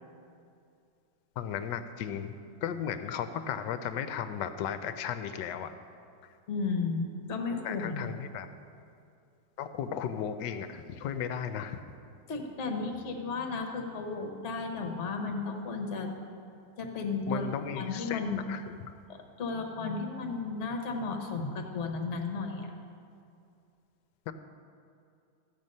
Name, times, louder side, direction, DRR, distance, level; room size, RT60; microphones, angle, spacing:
voice 1, 1.4-5.7 7.6-8.5 9.6-11.8 17.3-18.6 24.3-24.4, left 8 dB, 75° left, 10 dB, 1.1 m, -35 dB
voice 2, 6.5-8.0 12.3-16.1 16.8-17.5 17.8-18.4 19.1-22.7, left 4 dB, 45° left, 4 dB, 1.2 m, -34 dB
14.0 x 7.5 x 5.4 m, 2.5 s
omnidirectional pair, 2.2 m